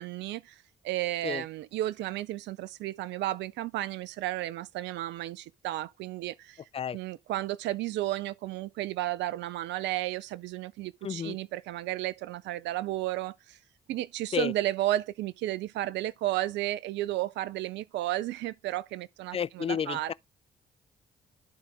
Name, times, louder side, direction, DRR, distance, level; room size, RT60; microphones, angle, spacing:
voice 1, 0.0-6.6 6.9-13.6 13.9-20.1, right 15 dB, 65° right, 0.4 m, -33 dB
voice 2, 11.0-11.4 14.3-14.5 19.3-20.1, left 7 dB, 30° left, 0.4 m, -31 dB
11.5 x 3.9 x 3.4 m
hypercardioid pair, 45°, 20 cm